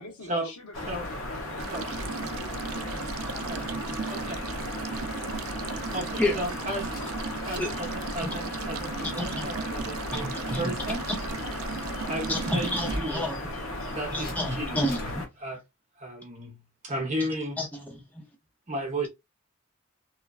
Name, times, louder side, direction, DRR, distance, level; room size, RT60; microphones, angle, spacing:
voice 1, 0.0-3.0 3.3-4.1, left 3 dB, 85° left, 1.2 m, -46 dB
sound 1, 0.7-15.3, left 1 dB, 65° left, 0.8 m, -35 dB
sound 2, 1.6-13.0, right 6 dB, 75° right, 0.4 m, -37 dB
voice 2, 4.1-4.4 5.9-6.9 7.4-11.0 12.0-13.3 13.9-14.9 15.4-15.6 16.0-17.6 18.7-19.1, right 1 dB, 30° right, 0.8 m, -34 dB
sound 3, 6.9-7.8 8.1-8.3 8.6-9.1 9.6-10.0 10.5-11.2 12.7-13.2 14.2-14.4 14.9-15.2, equal, 40° left, 0.9 m, -41 dB
voice 3, 9.0-9.5 10.1-10.7 12.3-13.4 14.1-15.2 17.6-18.3, left 1 dB, 5° left, 0.6 m, -30 dB
3.0 x 2.3 x 2.3 m
head